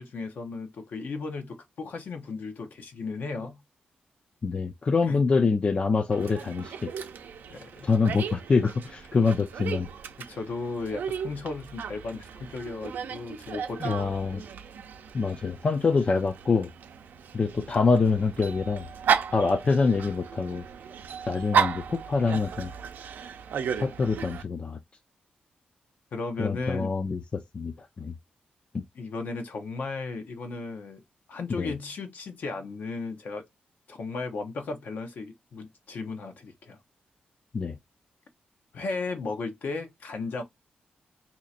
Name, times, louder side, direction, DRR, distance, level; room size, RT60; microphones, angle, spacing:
voice 1, 0.0-3.6 5.1-5.2 7.5-8.1 10.2-14.4 26.1-26.9 28.9-31.0 31.3-33.4 33.9-36.8 38.7-40.4, left 3 dB, 70° left, 0.9 m, -35 dB
voice 2, 4.4-6.9 7.8-9.9 13.8-14.4 15.1-16.7 17.3-18.9 19.3-20.6 21.3-22.7 23.8-24.8 26.4-28.1 28.7-28.8 31.6-31.7 37.5-37.8, left 4 dB, 40° left, 0.5 m, -25 dB
Dog, 6.1-24.4, right 7 dB, 85° right, 0.5 m, -34 dB
2.8 x 2.5 x 4.1 m
cardioid pair, 95°, 3 cm